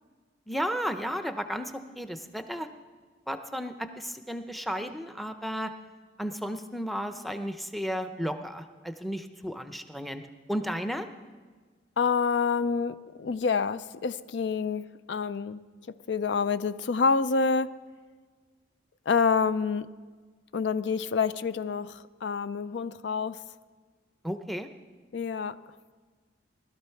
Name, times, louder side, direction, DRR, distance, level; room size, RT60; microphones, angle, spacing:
voice 1, 0.5-2.7 3.3-5.7 6.2-10.2 10.5-11.1 24.2-24.7, equal, ahead, 8 dB, 0.6 m, -33 dB
voice 2, 12.0-15.6 16.1-17.7 19.1-19.9 20.5-23.4 25.1-25.6, left 5 dB, 70° left, 15 dB, 0.4 m, -27 dB
19.5 x 12.5 x 4.5 m, 1.4 s
head